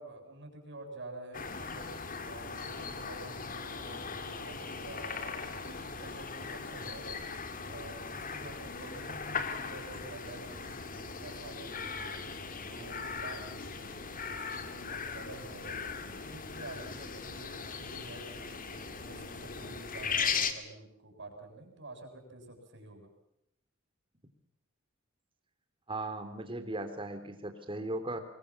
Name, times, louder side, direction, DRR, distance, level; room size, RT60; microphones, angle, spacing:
voice 1, 0.0-1.9 2.2-7.1 7.6-12.2 12.6-23.1, right 2 dB, 60° right, 4 dB, 7.5 m, -49 dB
sound 1, 1.3-20.5, left 5 dB, 40° left, 2.3 m, -39 dB
voice 2, 25.9-28.2, right 2 dB, 25° right, 8 dB, 3.3 m, -37 dB
24.5 x 23.0 x 7.2 m, 0.75 s
head